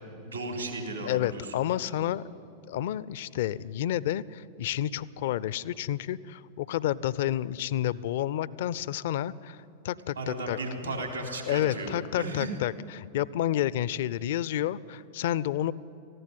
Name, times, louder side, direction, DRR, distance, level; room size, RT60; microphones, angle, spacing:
voice 1, 0.2-2.0 10.2-12.5, right 2 dB, 80° right, 2 dB, 3.6 m, -35 dB
voice 2, 1.0-2.2 2.7-10.6 10.8-11.0 11.5-15.7, left 12 dB, 55° left, 20 dB, 0.4 m, -30 dB
19.0 x 15.0 x 9.6 m, 2.6 s
figure-of-eight pair, 90°, 0 cm